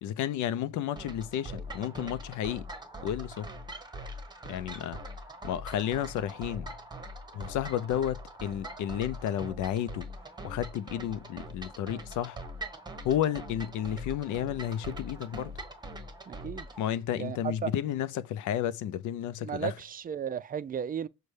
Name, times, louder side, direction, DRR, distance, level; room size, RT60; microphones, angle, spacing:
voice 1, 0.0-2.7 3.0-3.5 4.5-5.0 5.4-6.7 7.3-10.1 10.4-12.4 13.0-15.5 16.8-19.7, left 10 dB, 75° left, 0.5 m, -32 dB
sound 1, 1.0-16.8, equal, 15° right, 1.0 m, -42 dB
voice 2, 16.3-16.7 17.2-17.7 19.4-21.1, right 8 dB, 30° right, 0.4 m, -34 dB
6.4 x 2.2 x 3.2 m
cardioid pair, 90°, 30 cm